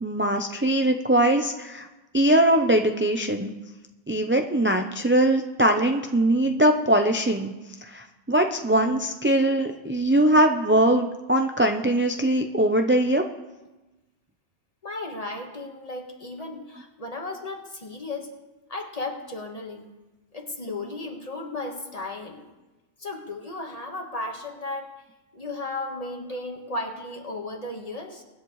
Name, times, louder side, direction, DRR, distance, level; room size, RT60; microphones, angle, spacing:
voice 1, 0.0-1.9 2.1-3.5 4.1-7.5 7.8-13.2, right 1 dB, 15° right, 4 dB, 0.5 m, -21 dB
voice 2, 14.8-18.3 18.7-19.9 20.3-22.5 23.0-24.9 25.3-28.2, left 2 dB, 35° left, 2 dB, 1.6 m, -35 dB
24.0 x 10.5 x 3.2 m, 1.1 s
omnidirectional pair, 1.2 m